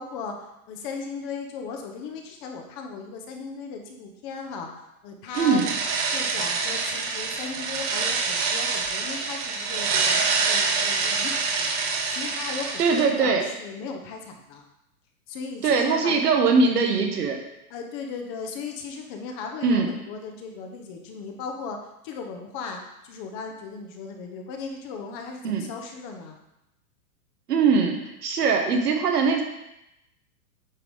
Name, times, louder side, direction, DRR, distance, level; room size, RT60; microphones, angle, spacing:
voice 1, 0.0-4.7 5.0-5.7 6.1-11.7 12.1-14.6 15.3-16.2 17.7-21.8 22.0-26.4, left 5 dB, 35° left, 3 dB, 1.0 m, -37 dB
sound 1, 5.3-13.1, right 4 dB, 35° right, 1.0 m, -26 dB
voice 2, 5.4-5.7 12.8-13.4 15.6-17.4 19.6-19.9 25.4-25.6 27.5-29.4, right 4 dB, 85° right, 3 dB, 1.6 m, -21 dB
8.8 x 3.8 x 4.8 m, 0.88 s
hypercardioid pair, 150°, 46 cm